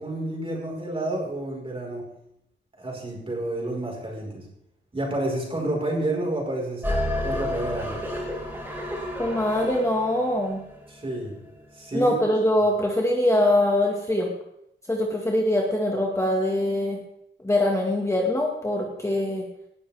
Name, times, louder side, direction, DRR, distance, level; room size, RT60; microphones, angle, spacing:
voice 1, 0.0-2.1 2.8-4.5 4.9-6.8 7.2-8.0 10.9-11.3 11.7-12.1, right 1 dB, 30° right, -2 dB, 4.9 m, -29 dB
sound 1, 6.8-11.1, left 1 dB, 10° right, 5.2 m, -30 dB
voice 2, 9.2-10.6 11.9-14.3 14.9-17.0 17.4-19.4, left 1 dB, 15° left, -1 dB, 1.9 m, -23 dB
18.5 x 11.5 x 3.6 m, 0.78 s
wide cardioid pair, 135°, 20 cm